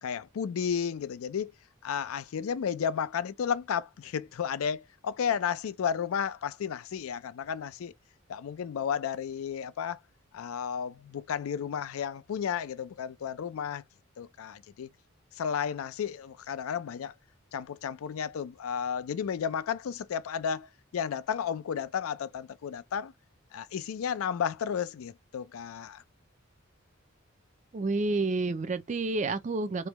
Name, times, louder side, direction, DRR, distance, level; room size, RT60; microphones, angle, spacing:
voice 1, 0.0-1.5 1.8-7.9 8.3-10.0 10.3-13.8 14.2-14.9 15.3-17.1 17.5-23.1 23.5-26.0, left 7 dB, 85° left, 0.4 m, -33 dB
voice 2, 27.7-29.9, right 3 dB, 35° right, 0.4 m, -29 dB
3.3 x 2.2 x 3.0 m
head